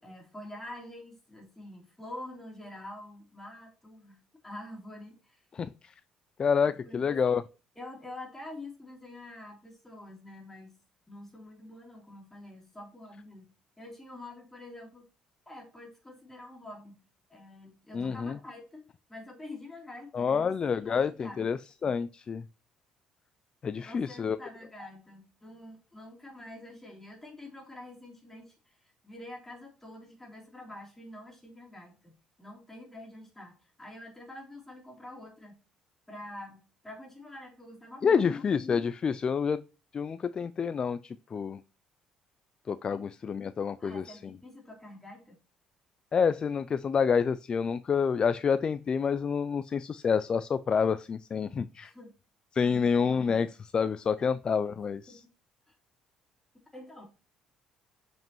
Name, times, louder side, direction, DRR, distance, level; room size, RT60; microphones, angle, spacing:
voice 1, 0.0-5.4 6.8-7.4 7.8-10.8 11.1-13.5 13.8-15.0 15.5-17.0 17.3-18.8 19.1-21.5 23.8-35.5 36.1-38.4 42.9-43.0 43.8-45.4 51.8-52.1 52.6-53.5 54.2-54.3 54.6-54.8 55.1-55.2 55.7-55.8 56.7-57.1, left 1 dB, 10° left, 3.2 m, -46 dB
voice 2, 5.5-5.9 6.4-7.4 17.9-18.4 20.1-22.4 23.6-24.4 38.0-39.6 39.9-41.6 42.7-44.2 46.1-51.9 52.5-55.2, left 6 dB, 35° left, 0.3 m, -28 dB
7.4 x 5.1 x 3.0 m
cardioid pair, 95°, 2 cm